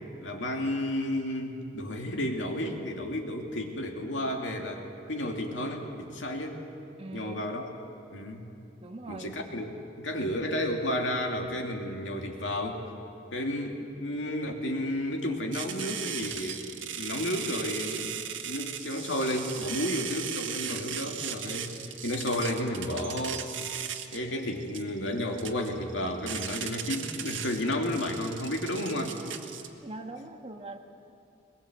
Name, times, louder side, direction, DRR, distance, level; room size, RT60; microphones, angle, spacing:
voice 1, 0.2-6.6 7.1-7.7 8.1-8.5 9.1-12.8 13.3-16.7 17.0-18.1 18.4-23.5 24.1-29.2, left 1 dB, 75° left, 2 dB, 2.6 m, -32 dB
voice 2, 7.0-7.4 8.8-9.3 29.8-30.8, right 2 dB, 30° right, 4 dB, 1.5 m, -42 dB
sound 1, 15.5-29.7, right 9 dB, 85° right, 1.6 m, -37 dB
21.5 x 21.0 x 8.0 m, 2.7 s
head